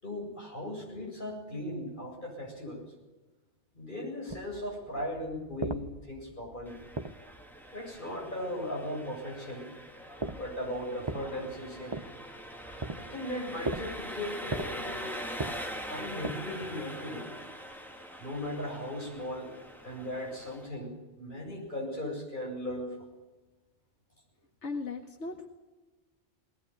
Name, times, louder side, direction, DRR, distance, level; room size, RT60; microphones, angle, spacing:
voice 1, 0.0-2.8 3.7-6.8 7.7-9.7 10.3-12.1 12.9-15.1 15.9-17.3 18.2-19.5 19.8-23.0, left 1 dB, 45° left, -1 dB, 8.4 m, -37 dB
sound 1, 4.3-7.7 10.1-16.8, right 2 dB, 25° right, 1.0 m, -40 dB
Engine, 6.6-20.7, equal, ahead, 2.7 m, -43 dB
voice 2, 24.6-25.5, left 3 dB, 85° left, 4 dB, 2.1 m, -37 dB
21.5 x 20.0 x 9.5 m, 1.2 s
omnidirectional pair, 1.2 m